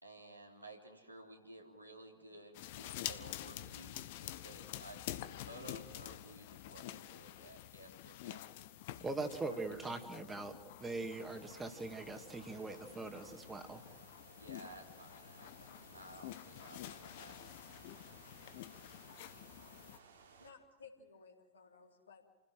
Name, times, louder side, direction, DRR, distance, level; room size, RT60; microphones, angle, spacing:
voice 1, 0.0-8.4 9.5-9.6 14.4-17.5, right 2 dB, 85° right, 0 dB, 3.6 m, -55 dB
sound 1, 2.5-20.0, left 13 dB, 50° left, 1.2 m, -49 dB
voice 2, 9.0-13.8, right 3 dB, 15° right, 6 dB, 2.4 m, -42 dB
sound 2, 10.8-20.5, right 5 dB, 65° right, 3.3 m, -61 dB
voice 3, 20.2-22.3, left 5 dB, 70° left, 0 dB, 3.9 m, -58 dB
29.5 x 16.5 x 7.7 m, 1.3 s
figure-of-eight pair, 90°, 0 cm